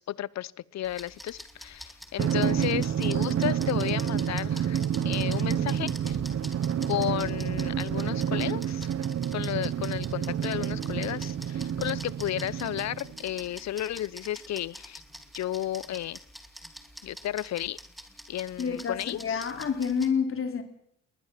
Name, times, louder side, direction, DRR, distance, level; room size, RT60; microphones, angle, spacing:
voice 1, 0.0-6.2 6.9-8.9 9.3-15.0 15.3-16.2 17.0-17.8 18.3-19.4, left 12 dB, 60° left, 0.8 m, -33 dB
sound 1, 0.8-20.1, equal, ahead, 2.5 m, -46 dB
Drum, 2.2-13.2, right 9 dB, 55° right, 1.1 m, -29 dB
voice 2, 18.6-20.6, left 6 dB, 45° left, 3.2 m, -28 dB
20.5 x 19.5 x 7.5 m
cardioid pair, 90°, 30 cm